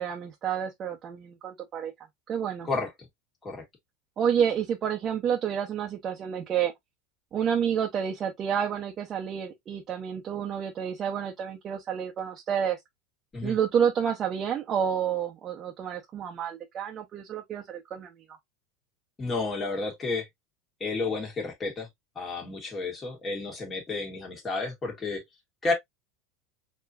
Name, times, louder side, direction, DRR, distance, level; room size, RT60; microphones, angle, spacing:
voice 1, 0.0-1.9 2.3-2.7 4.2-6.7 7.3-12.8 13.4-18.1, right 8 dB, 35° right, 0.8 m, -29 dB
voice 2, 19.2-20.3 20.8-21.9 22.2-25.2 25.6-25.7, left 3 dB, 20° left, 2.0 m, -31 dB
4.7 x 3.0 x 2.5 m
supercardioid pair, 120°, 0 cm